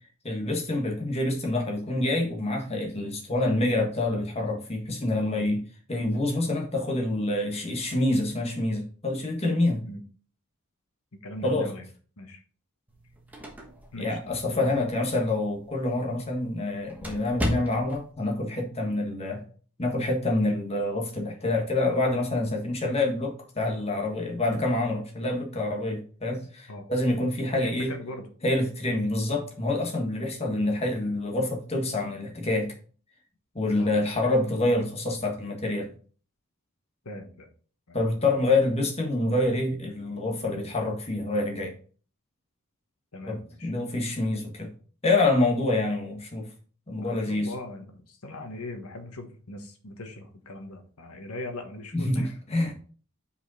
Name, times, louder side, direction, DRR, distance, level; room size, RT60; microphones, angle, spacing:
voice 1, 0.2-5.6 5.9-9.8 11.4-11.7 14.0-19.4 19.8-27.9 28.4-32.7 33.5-35.9 37.9-41.8 43.3-44.7 45.0-46.5 46.9-47.5 51.9-52.7, left 2 dB, 30° left, 1 dB, 1.4 m, -27 dB
voice 2, 11.1-11.8 12.2-12.4 13.9-14.8 26.7-26.9 27.5-28.3 33.8-34.0 37.0-37.5 37.9-38.0 43.1-43.7 47.0-52.4 52.7-52.8, left 1 dB, 80° left, 5 dB, 1.2 m, -40 dB
sound 1, 12.9-18.1, left 1 dB, 5° right, 1.2 m, -38 dB
5.5 x 5.0 x 4.1 m, 0.42 s
head